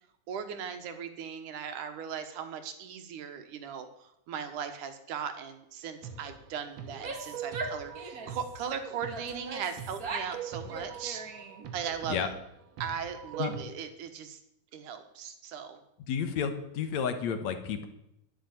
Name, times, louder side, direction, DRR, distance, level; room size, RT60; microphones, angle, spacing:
voice 1, 0.3-11.2 11.7-12.3 12.8-14.4 14.7-15.8, right 7 dB, 80° right, 8 dB, 2.8 m, -38 dB
sound 1, 6.0-13.6, right 7 dB, 60° right, 2.4 m, -43 dB
Female speech woman speaking / Yell, 6.8-8.5 9.1-10.4 10.7-11.7, right 3 dB, 40° right, 1.4 m, -39 dB
voice 2, 16.1-17.9, left 7 dB, 65° left, 8 dB, 2.3 m, -31 dB
10.5 x 10.0 x 9.5 m, 0.83 s
omnidirectional pair, 3.6 m